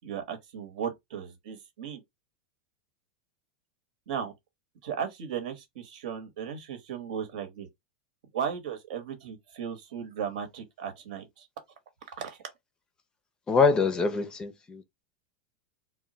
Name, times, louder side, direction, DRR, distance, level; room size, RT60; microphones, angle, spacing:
voice 1, 0.0-2.0 4.1-4.3 4.8-7.7 8.3-11.5 12.2-12.4, right 8 dB, 75° right, 1.0 m, -36 dB
voice 2, 13.5-14.8, left 4 dB, 20° left, 0.4 m, -24 dB
2.1 x 2.1 x 3.8 m
supercardioid pair, 130°, 4 cm